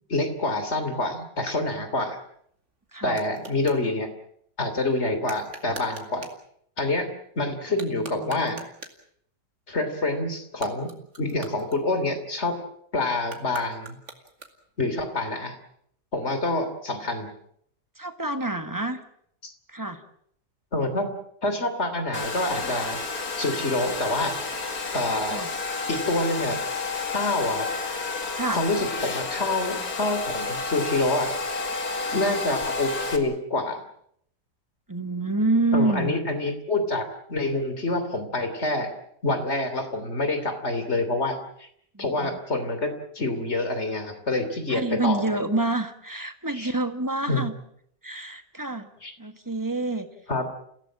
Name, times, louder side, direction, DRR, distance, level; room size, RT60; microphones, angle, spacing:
voice 1, 0.1-2.2 3.0-4.1 4.6-6.3 6.8-7.1 7.3-8.6 9.7-10.9 11.2-12.6 12.9-14.0 14.8-15.5 16.1-17.3 19.4-19.5 20.7-21.1 21.4-23.0 23.4-24.3 24.9-25.4 25.9-26.6 27.1-27.7 28.5-31.3 32.1-33.8 35.7-38.9 39.2-41.7 42.0-45.2 46.5-46.7 47.3-47.4 49.0-49.1 50.3-50.5, left 2 dB, 40° left, 9 dB, 3.3 m, -27 dB
sound 1, 2.1-3.9 5.2-6.5 7.7-9.1 10.4-12.3 13.2-14.8, right 3 dB, 45° right, 2.6 m, -44 dB
voice 2, 2.9-3.2 7.7-8.6 18.0-19.0 19.7-20.0 25.3-25.5 28.3-28.6 34.9-36.2 41.9-42.4 44.7-47.5 48.0-48.9 49.2-50.1, right 2 dB, 10° right, 8 dB, 1.5 m, -28 dB
Domestic sounds home sounds, 22.1-33.2, left 4 dB, 60° left, 2.7 m, -30 dB
30.0 x 16.5 x 7.5 m, 0.69 s
omnidirectional pair, 1.8 m